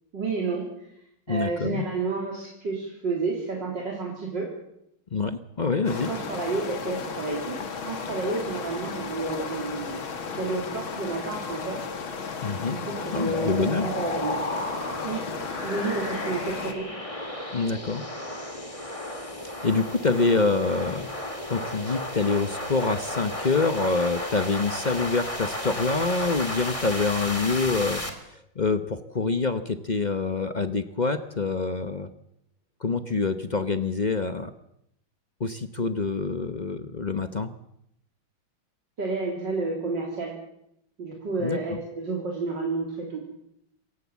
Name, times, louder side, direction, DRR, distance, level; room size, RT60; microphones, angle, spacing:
voice 1, 0.1-0.9 1.3-4.5 6.1-11.9 12.7-14.4 15.0-15.3 15.6-16.9 39.0-40.4 41.0-43.2, right 3 dB, 60° right, -1 dB, 4.1 m, -31 dB
voice 2, 1.3-1.9 5.1-6.1 12.4-12.8 13.1-13.9 17.5-18.0 19.6-21.1 21.5-28.0 28.3-32.1 32.8-34.5 35.4-37.5 41.4-41.8, left 4 dB, 45° left, 10 dB, 0.5 m, -26 dB
sound 1, 5.9-16.7, left 5 dB, 75° left, 2.8 m, -34 dB
sound 2, 13.3-28.1, left 1 dB, 15° left, 2.5 m, -33 dB
27.0 x 15.5 x 7.4 m, 0.77 s
omnidirectional pair, 2.3 m